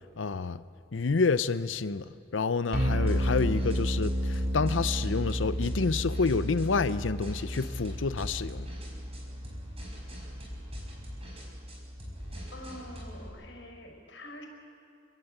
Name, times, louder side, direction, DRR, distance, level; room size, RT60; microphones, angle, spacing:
voice 1, 0.2-0.6 0.9-8.7, left 4 dB, 85° left, 0.7 m, -29 dB
sound 1, 2.7-12.8, equal, 55° right, 3.5 m, -33 dB
sound 2, 3.1-13.3, equal, 30° right, 5.0 m, -44 dB
voice 2, 12.5-14.5, left 1 dB, 70° left, 5.5 m, -46 dB
30.0 x 12.5 x 8.1 m
head